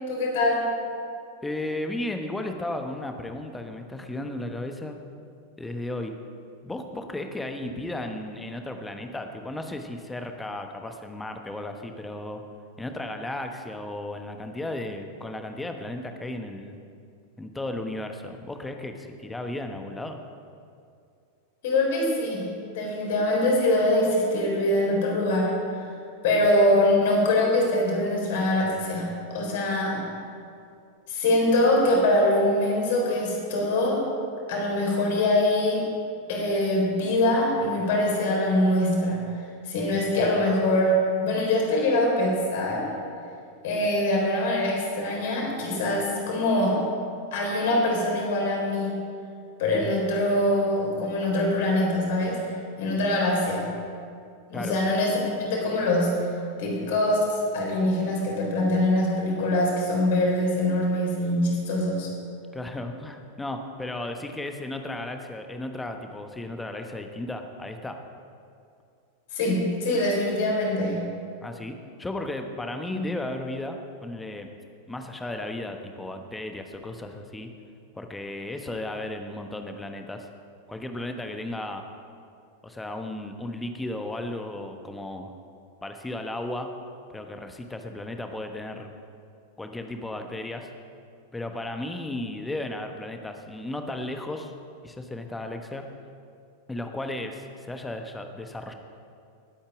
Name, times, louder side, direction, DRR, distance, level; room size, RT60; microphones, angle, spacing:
voice 1, 0.1-0.7 21.6-25.5 26.2-30.0 31.1-34.0 34.5-35.9 36.3-39.4 39.7-42.9 43.6-46.9 47.3-49.0 49.6-52.4 52.8-53.8 54.5-56.2 56.6-62.1 69.3-71.1 72.9-73.1, left 1 dB, 55° left, -1 dB, 4.1 m, -23 dB
voice 2, 1.4-5.0 5.6-6.1 6.6-12.4 12.8-16.8 17.4-20.2 54.5-54.8 62.5-68.0 71.4-74.5 74.9-77.5 77.9-80.3 80.7-81.8 82.6-85.3 85.8-86.7 87.1-88.9 89.6-90.7 91.3-94.5 94.8-95.9 96.7-98.7, left 1 dB, 10° left, 5 dB, 1.2 m, -34 dB
20.5 x 8.8 x 5.0 m, 2.4 s
figure-of-eight pair, 90°, 0 cm